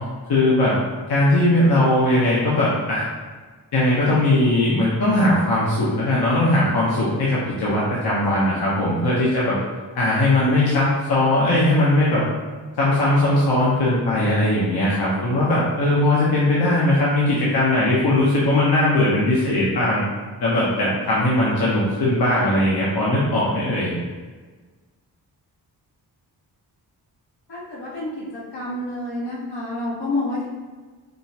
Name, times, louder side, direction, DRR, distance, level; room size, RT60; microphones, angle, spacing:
voice 1, 0.3-0.7 1.1-3.1 3.7-9.5 9.9-12.2 12.8-20.0 20.4-23.9, left 1 dB, 65° left, -7 dB, 0.9 m, -19 dB
voice 2, 27.5-30.5, left 2 dB, 85° left, -6 dB, 1.4 m, -28 dB
5.0 x 2.4 x 2.8 m, 1.4 s
cardioid pair, 70°, 41 cm